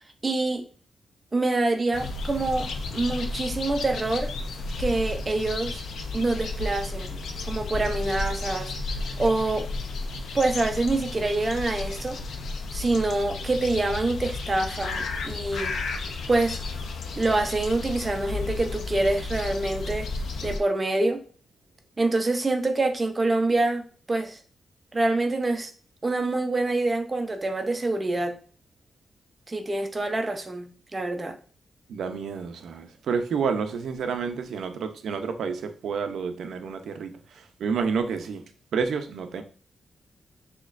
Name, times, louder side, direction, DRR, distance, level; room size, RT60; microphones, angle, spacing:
voice 1, 0.2-0.6 1.3-4.3 4.8-5.8 6.1-7.2 7.5-8.7 9.2-9.7 10.3-12.2 12.7-15.7 16.3-16.6 17.2-20.1 20.4-21.2 22.0-24.4 24.9-25.7 26.0-28.4 29.5-31.4, right 2 dB, 25° right, 0.6 m, -26 dB
sound 1, 1.9-20.6, left 3 dB, 80° left, 0.6 m, -33 dB
voice 2, 31.9-38.4 38.7-39.4, right 5 dB, 90° right, 0.6 m, -29 dB
6.3 x 3.0 x 2.5 m
wide cardioid pair, 155°, 0 cm